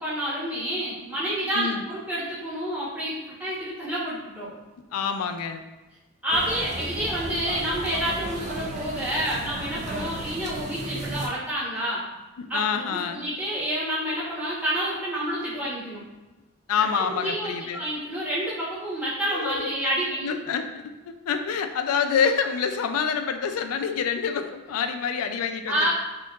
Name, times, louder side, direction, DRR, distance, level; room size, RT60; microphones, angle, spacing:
voice 1, 0.0-4.5 6.2-12.0 12.5-16.0 16.8-20.3 25.7-25.9, equal, 5° right, -9 dB, 1.0 m, -29 dB
voice 2, 4.9-5.6 12.4-13.2 16.7-17.8 19.3-19.7 20.2-25.9, left 6 dB, 90° left, 7 dB, 0.4 m, -27 dB
sound 1, 6.3-11.3, right 2 dB, 30° right, 0.3 m, -35 dB
4.4 x 2.8 x 2.4 m, 1.1 s
head